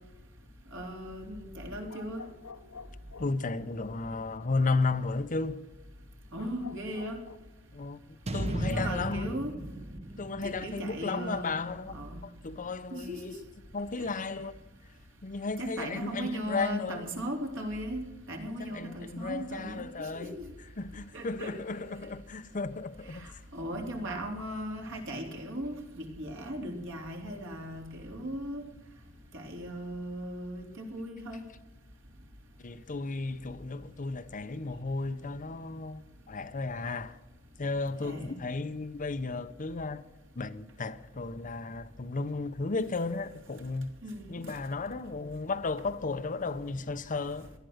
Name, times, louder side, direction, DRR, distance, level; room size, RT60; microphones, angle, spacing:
voice 1, 0.7-2.2 6.3-7.2 8.4-9.5 10.4-11.5 11.9-12.2 12.9-13.4 14.0-14.1 15.6-18.0 18.3-20.5 21.1-22.0 23.1-28.7 29.3-31.4 38.0-38.3 44.0-44.3, equal, 60° right, 3.3 m, -38 dB
sound 1, 1.9-3.6 6.3-7.4, left 5 dB, 75° left, 1.0 m, -49 dB
voice 2, 3.2-5.7 7.7-9.4 10.2-11.9 12.2-13.3 13.7-14.6 15.2-17.1 18.5-20.4 20.8-23.4 32.6-37.2 37.6-40.0 40.4-43.9 44.3-47.5, left 3 dB, 35° left, 0.7 m, -34 dB
sound 2, 8.3-12.5, right 1 dB, 30° right, 1.0 m, -37 dB
18.5 x 12.0 x 6.4 m
head